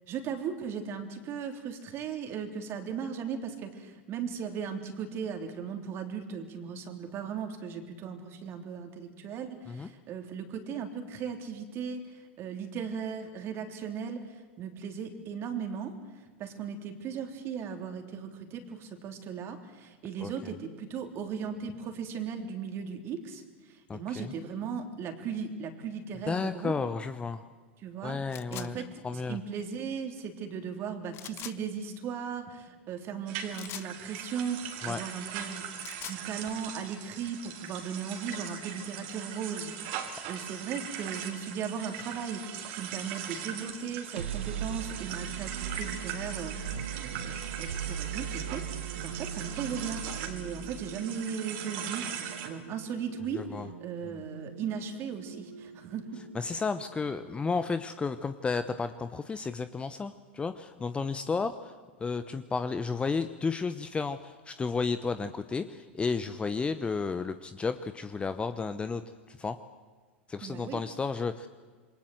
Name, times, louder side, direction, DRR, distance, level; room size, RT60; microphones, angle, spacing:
voice 1, 0.1-26.7 27.8-28.2 28.5-28.9 29.1-35.6 36.0-56.2 70.4-70.8, right 6 dB, 40° right, 5 dB, 3.5 m, -37 dB
voice 2, 23.9-24.3 26.3-27.4 28.0-29.4 34.8-35.0 53.4-53.7 54.0-54.2 56.3-61.7 62.0-69.0 69.3-69.6 70.3-71.5, left 4 dB, 15° left, 11 dB, 1.0 m, -32 dB
sound 1, 28.3-28.7 31.1-31.6 33.5-33.9 35.6-36.2, left 14 dB, 40° left, 1.1 m, -42 dB
sound 2, 33.3-52.5, right 8 dB, 55° right, 3.7 m, -40 dB
sound 3, 43.9-57.7, right 8 dB, 75° right, 1.1 m, -40 dB
27.5 x 22.5 x 7.9 m, 1.4 s
figure-of-eight pair, 90°, 6 cm